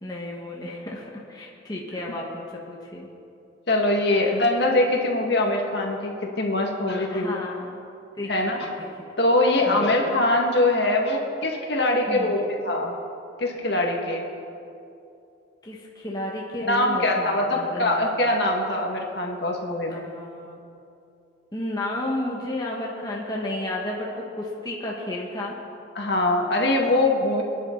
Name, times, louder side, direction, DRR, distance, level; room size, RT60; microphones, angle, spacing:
voice 1, 0.0-3.1 7.1-7.7 8.2-8.3 8.6-8.9 9.7-9.9 12.0-12.4 15.6-18.1 19.9-20.6 21.5-25.6, left 1 dB, 20° left, -3 dB, 1.6 m, -32 dB
voice 2, 3.7-7.4 8.3-8.7 9.2-12.9 13.4-14.2 16.6-20.0 26.0-27.4, left 2 dB, 60° left, 0 dB, 2.0 m, -23 dB
27.0 x 10.5 x 4.0 m, 2.7 s
head